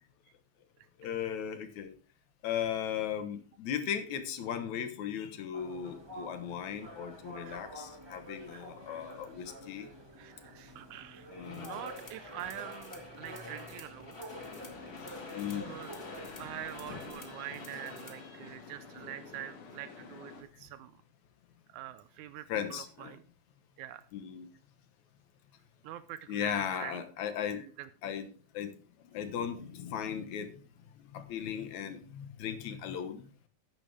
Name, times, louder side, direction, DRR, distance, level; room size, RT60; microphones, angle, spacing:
voice 1, 1.0-1.9 2.4-9.9 11.3-11.8 15.3-15.8 16.9-17.0 17.3-17.4 18.4-18.5 22.5-23.2 24.1-24.5 26.3-27.7 28.0-28.3 28.5-30.6 31.0-33.3, left 8 dB, 70° left, 9 dB, 2.6 m, -37 dB
sound 1, 5.5-17.1, right 1 dB, 10° right, 1.4 m, -49 dB
voice 2, 10.2-14.2 15.7-15.9 16.4-21.0 21.7-23.2 23.8-24.1 25.8-27.0 27.6-27.9, right 12 dB, 80° right, 13 dB, 2.0 m, -45 dB
sound 2, 11.4-18.3, left 3 dB, 30° left, 1.1 m, -49 dB
sound 3, 14.3-20.4, left 4 dB, 50° left, 2.4 m, -48 dB
12.0 x 9.6 x 3.4 m, 0.37 s
omnidirectional pair, 3.5 m